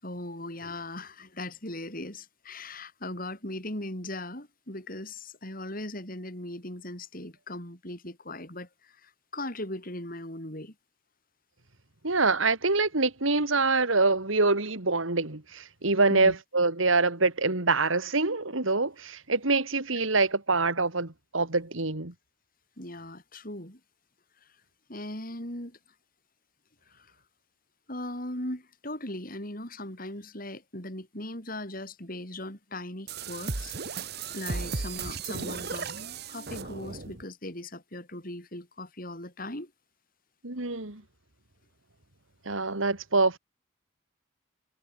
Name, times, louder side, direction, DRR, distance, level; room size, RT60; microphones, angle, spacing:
voice 1, 0.0-10.7 16.1-16.4 22.8-23.8 24.4-24.5 24.9-25.8 26.9-27.1 27.9-33.7 34.3-35.9 36.3-39.7, left 1 dB, 45° left, 7.6 m, -39 dB
voice 2, 12.0-22.1 40.4-41.0 42.5-43.4, right 3 dB, 80° right, 2.7 m, -25 dB
sound 1, 33.1-37.2, right 4 dB, 50° right, 1.6 m, -35 dB
head